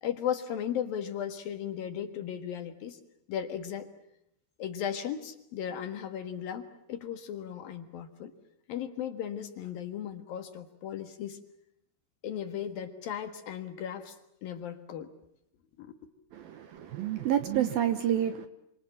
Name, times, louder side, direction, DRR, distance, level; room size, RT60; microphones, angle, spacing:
voice 1, 0.0-3.0 3.3-3.9 4.6-8.3 8.7-11.4 12.2-14.2 14.4-15.1 15.8-16.0, left 9 dB, 60° left, 9 dB, 2.9 m, -36 dB
voice 2, 16.3-18.5, right 10 dB, 70° right, 11 dB, 2.5 m, -29 dB
28.0 x 26.5 x 7.3 m, 0.78 s
omnidirectional pair, 5.3 m